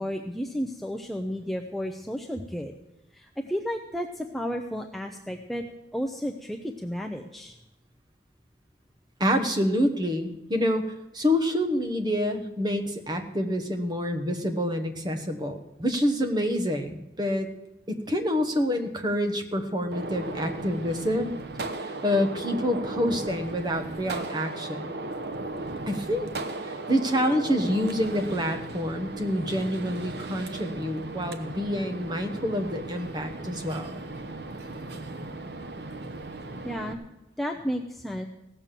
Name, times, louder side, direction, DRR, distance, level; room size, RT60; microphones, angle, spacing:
voice 1, 0.0-2.7 3.1-5.6 5.9-7.6 36.6-37.0 37.4-38.3, equal, ahead, 2 dB, 0.6 m, -32 dB
voice 2, 9.2-17.5 17.9-21.3 21.8-24.9 25.9-26.3 26.6-34.0, equal, 25° right, 6 dB, 1.1 m, -27 dB
Gunshot gunfire, 19.9-36.9, right 2 dB, 65° right, 0.9 m, -36 dB
16.5 x 6.9 x 7.4 m, 0.93 s
head